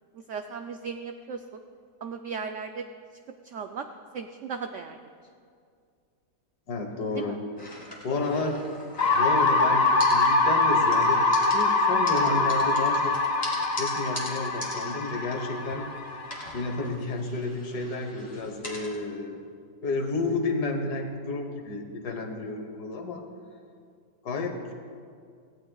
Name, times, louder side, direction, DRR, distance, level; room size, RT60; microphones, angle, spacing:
voice 1, 0.1-1.4 2.0-2.8 3.4-3.9 4.1-5.0 7.1-7.4, right 5 dB, 85° right, 6 dB, 0.6 m, -36 dB
voice 2, 6.7-7.4 8.0-8.6 9.1-13.1 13.8-15.9 16.5-19.4 19.8-23.2 24.2-24.7, left 3 dB, 70° left, 4 dB, 1.7 m, -31 dB
sound 1, 7.6-9.6 10.0-10.6 10.9-15.9 16.2-19.0, left 1 dB, 15° left, 1.8 m, -41 dB
sound 2, 9.0-16.9, left 3 dB, 45° left, 0.9 m, -24 dB
17.5 x 15.0 x 2.3 m, 2.2 s
omnidirectional pair, 1.8 m